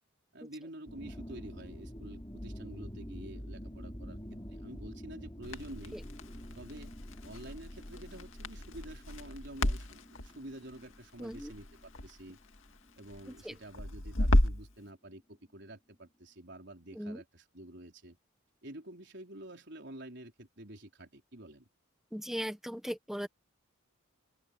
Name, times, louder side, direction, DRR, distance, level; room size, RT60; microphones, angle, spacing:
voice 1, 0.3-6.0 6.6-7.0 7.2-12.4 13.0-18.2 18.6-21.7, right 1 dB, 55° right, 4.8 m, -49 dB
sound 1, 0.9-13.7, equal, 20° left, 7.1 m, -48 dB
Crackle, 5.4-14.7, left 1 dB, 75° left, 2.1 m, -34 dB
voice 2, 11.2-11.5 13.4-13.5 16.9-17.2 22.1-23.3, equal, ahead, 1.1 m, -38 dB
open air
head